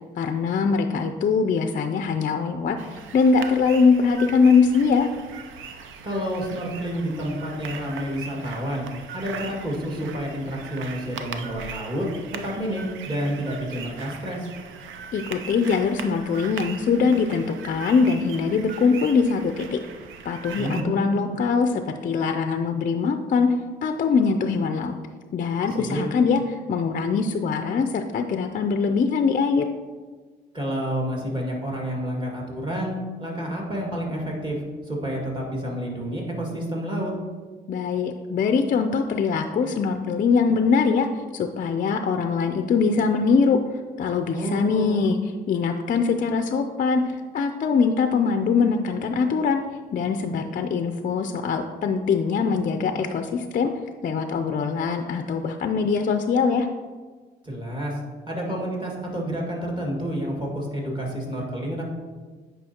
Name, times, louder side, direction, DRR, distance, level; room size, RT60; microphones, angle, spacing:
voice 1, 0.2-5.1 15.1-19.8 20.2-23.5 23.8-24.9 25.3-29.7 37.7-43.6 44.0-45.2 45.5-49.6 49.9-53.7 54.0-56.7, left 5 dB, 45° left, 7 dB, 0.4 m, -22 dB
sound 1, 2.8-20.8, right 6 dB, 80° right, 0.6 m, -40 dB
voice 2, 6.0-12.1 12.4-14.5 20.6-21.2 25.8-26.0 30.5-34.6 34.8-37.1 44.3-45.1 57.4-58.0 58.3-61.8, equal, 25° right, -2 dB, 2.0 m, -29 dB
8.7 x 5.1 x 2.9 m, 1.4 s
cardioid pair, 90°, 20 cm